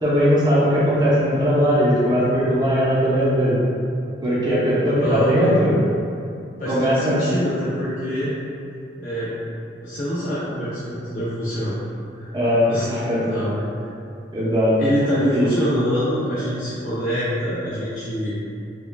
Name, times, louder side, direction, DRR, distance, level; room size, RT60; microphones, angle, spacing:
voice 1, 0.0-3.5 4.2-5.8 6.7-7.1 12.3-13.2 14.3-14.8 15.3-15.5, equal, 25° right, -9 dB, 0.6 m, -19 dB
voice 2, 5.0-5.3 6.6-8.4 9.0-9.3 9.8-11.7 12.1-12.3 12.7-12.9 13.3-13.6 14.8-18.3, equal, 45° left, -10 dB, 0.5 m, -25 dB
4.6 x 2.3 x 2.2 m, 2.6 s
head